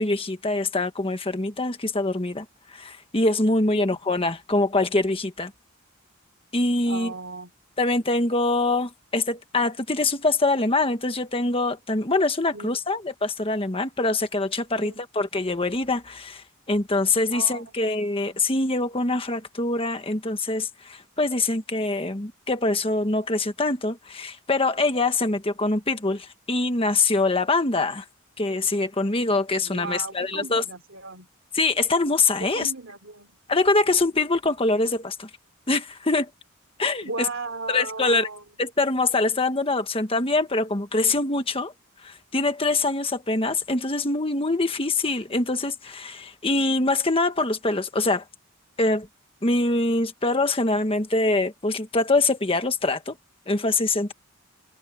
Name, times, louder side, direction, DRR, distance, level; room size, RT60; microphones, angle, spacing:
voice 1, 0.0-2.4 2.7-5.5 6.5-7.1 7.8-28.0 28.4-30.6 31.5-32.7 33.5-35.3 35.7-36.3 36.8-37.3 37.7-38.3 38.6-41.7 42.0-48.2 48.8-49.1 49.4-53.1 53.5-54.1, left 2 dB, 25° left, 1.4 m, -24 dB
voice 2, 6.8-7.5 12.5-12.8 14.8-15.0 17.3-17.9 29.6-31.3 32.4-33.3 33.8-34.0 37.0-38.4, right 3 dB, 60° right, 3.2 m, -36 dB
head